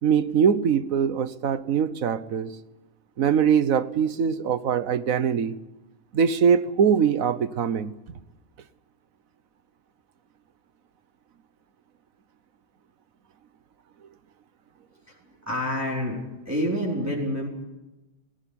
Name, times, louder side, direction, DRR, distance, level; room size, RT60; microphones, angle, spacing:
voice 1, 0.0-2.5 3.2-5.6 6.1-7.9, right 7 dB, 85° right, 1.5 m, -22 dB
voice 2, 15.5-16.2 16.4-17.5, equal, 10° right, 4.6 m, -27 dB
18.0 x 17.0 x 10.0 m
omnidirectional pair, 1.4 m